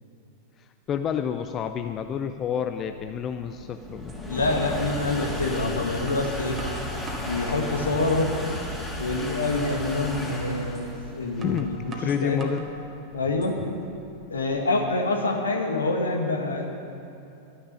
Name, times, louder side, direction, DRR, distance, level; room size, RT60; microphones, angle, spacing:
voice 1, 0.9-4.1 11.3-12.6, left 8 dB, 30° left, 8 dB, 0.5 m, -29 dB
sound 1, 1.5-14.6, left 1 dB, 5° left, 2.4 m, -35 dB
sound 2, 3.5-3.6 4.1-4.2 5.4-5.6 6.1-7.4 7.9-8.4 8.8-8.9 9.4-9.6 10.7-10.9 11.4-12.7 13.2-13.8, right 2 dB, 25° right, 1.5 m, -42 dB
voice 2, 4.3-6.6 7.2-8.3 9.0-12.5 13.1-13.5 14.3-16.7, left 2 dB, 75° left, 3 dB, 1.6 m, -26 dB
12.5 x 10.0 x 6.8 m, 2.8 s
figure-of-eight pair, 90°, 0 cm